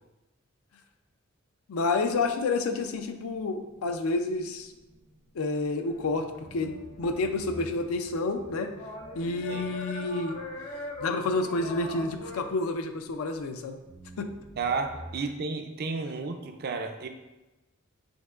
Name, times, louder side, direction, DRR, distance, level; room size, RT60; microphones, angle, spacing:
voice 1, 1.7-4.7 5.3-8.7 9.2-10.4 11.0-13.8 14.2-14.3, left 3 dB, 70° left, 6 dB, 0.4 m, -29 dB
sound 1, 2.1-6.0 6.4-13.4 13.8-15.2, equal, 75° right, 1.1 m, -51 dB
sound 2, 5.8-12.4, left 1 dB, 50° left, 0.8 m, -42 dB
voice 2, 14.6-17.1, right 4 dB, 45° right, 6 dB, 0.4 m, -32 dB
5.3 x 3.7 x 2.4 m, 1.1 s
head